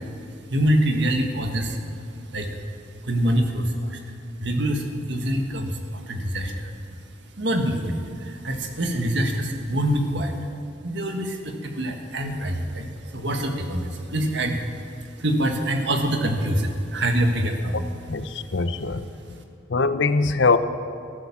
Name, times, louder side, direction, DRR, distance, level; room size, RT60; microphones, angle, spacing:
voice 1, 0.5-1.8 2.3-2.5 3.0-4.0 4.4-6.7 7.4-10.3 10.8-14.6 15.2-17.9, right 1 dB, 60° right, 4 dB, 1.6 m, -25 dB
voice 2, 18.1-19.4 19.7-20.6, left 4 dB, 65° left, 12 dB, 0.7 m, -23 dB
14.0 x 11.5 x 7.4 m, 2.7 s
head